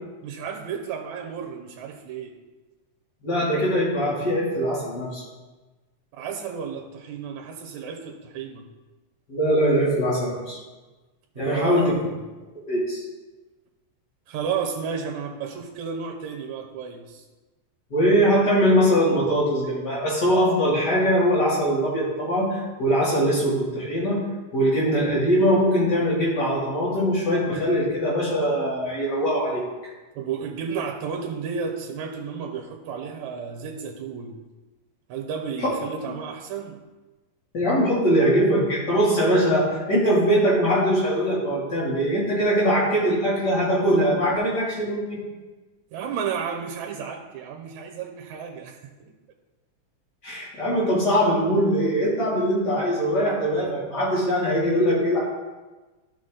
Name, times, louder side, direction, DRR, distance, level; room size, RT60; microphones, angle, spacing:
voice 1, 0.2-2.3 6.1-8.7 11.4-12.2 14.3-17.2 30.2-34.4 35.1-36.8 45.9-49.1, right 6 dB, 80° right, 2 dB, 2.2 m, -32 dB
voice 2, 3.2-5.2 9.3-10.6 11.4-12.0 12.7-13.0 17.9-24.2 24.5-29.6 35.6-35.7 37.5-45.2 50.2-55.2, equal, 35° left, -7 dB, 3.6 m, -22 dB
12.0 x 5.9 x 4.0 m, 1.2 s
omnidirectional pair, 3.4 m